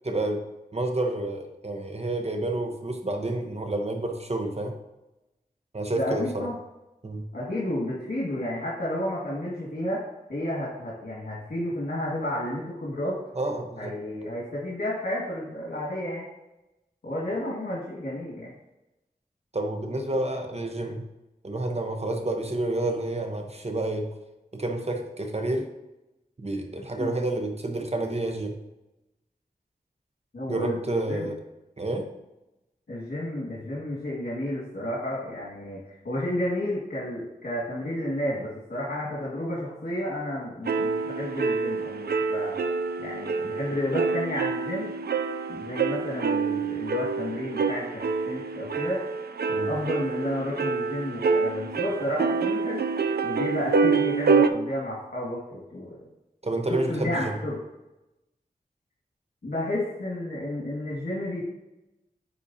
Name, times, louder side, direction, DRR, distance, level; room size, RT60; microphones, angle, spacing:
voice 1, 0.0-0.4 0.7-4.7 5.7-6.5 7.0-7.3 13.3-13.9 19.5-21.0 21.4-24.1 24.5-25.7 26.4-28.6 30.5-31.4 31.8-32.1 49.5-49.7 56.4-57.4, right 2 dB, 40° right, 4 dB, 1.0 m, -29 dB
voice 2, 5.9-6.6 7.3-10.0 10.3-13.2 13.7-16.3 17.0-18.5 27.0-27.1 30.3-31.3 32.9-42.6 43.0-44.9 45.5-49.0 49.7-52.8 53.2-56.0 56.7-57.6 59.4-61.4, left 1 dB, 80° left, -8 dB, 1.9 m, -31 dB
sound 1, 40.6-54.5, right 5 dB, 80° right, 0.4 m, -27 dB
10.0 x 4.1 x 2.8 m, 0.96 s
wide cardioid pair, 55°, 16 cm